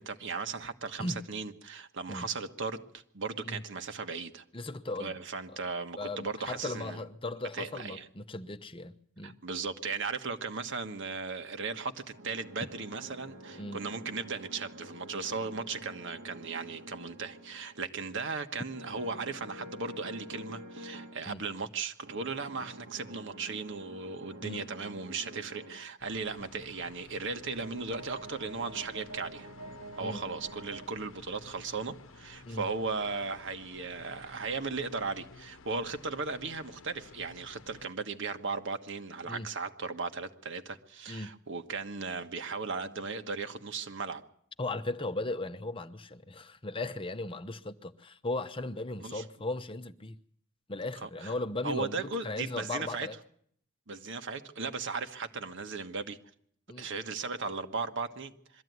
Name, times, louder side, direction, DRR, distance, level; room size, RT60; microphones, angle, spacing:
voice 1, 0.0-4.4 5.0-7.0 7.5-8.1 9.2-29.5 30.0-44.2 49.0-49.2 51.0-51.3 51.6-53.1 53.9-56.2 56.7-58.6, right 4 dB, 65° right, 1.4 m, -37 dB
voice 2, 4.5-5.2 5.5-5.6 6.0-9.4 13.6-13.8 21.3-21.4 24.4-24.6 30.0-30.2 32.5-32.7 39.3-39.5 41.1-41.3 44.6-50.2 50.7-53.2 56.7-56.9, left 2 dB, 25° left, 0.8 m, -37 dB
sound 1, 11.8-17.9 18.7-21.2 22.0-25.8 27.1-30.9, right 1 dB, 80° right, 1.9 m, -48 dB
sound 2, 26.0-37.9, left 3 dB, 70° left, 0.9 m, -53 dB
22.5 x 14.0 x 9.5 m
head